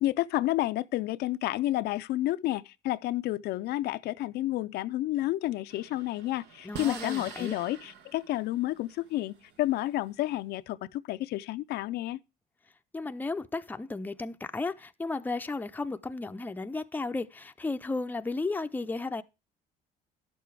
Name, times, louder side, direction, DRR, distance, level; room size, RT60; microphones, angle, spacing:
voice 1, 0.0-12.2, left 15 dB, 75° left, 0.4 m, -30 dB
sound 1, 5.7-10.3, right 7 dB, 80° right, 1.2 m, -46 dB
voice 2, 6.6-7.5 12.9-19.2, left 3 dB, 10° left, 0.5 m, -34 dB
11.0 x 6.9 x 4.7 m
cardioid pair, 110°, 17 cm